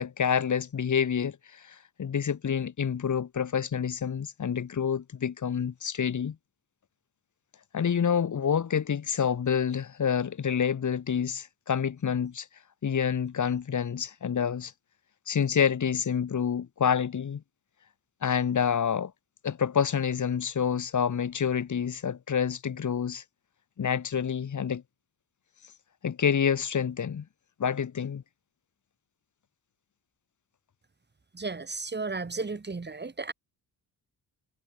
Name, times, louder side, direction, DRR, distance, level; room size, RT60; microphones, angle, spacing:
voice 1, 0.0-6.4 7.7-12.5 12.8-14.7 15.3-17.4 18.2-19.1 19.4-23.2 23.8-24.8 26.0-27.2 27.6-28.2, left 7 dB, 50° left, 2.9 m, -28 dB
voice 2, 31.3-33.3, right 4 dB, 25° right, 6.0 m, -34 dB
cardioid pair, 110°, 38 cm